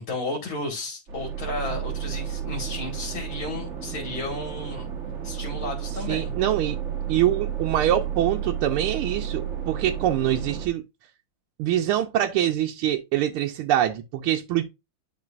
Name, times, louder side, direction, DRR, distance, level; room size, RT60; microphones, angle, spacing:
voice 1, 0.1-4.9 5.2-6.3, left 2 dB, 70° left, 2.6 m, -33 dB
sound 1, 1.1-10.7, right 9 dB, 40° right, 1.2 m, -32 dB
voice 2, 6.1-6.8 7.1-10.8 11.6-14.6, right 12 dB, 85° right, 1.5 m, -24 dB
10.5 x 4.6 x 2.4 m
omnidirectional pair, 2.3 m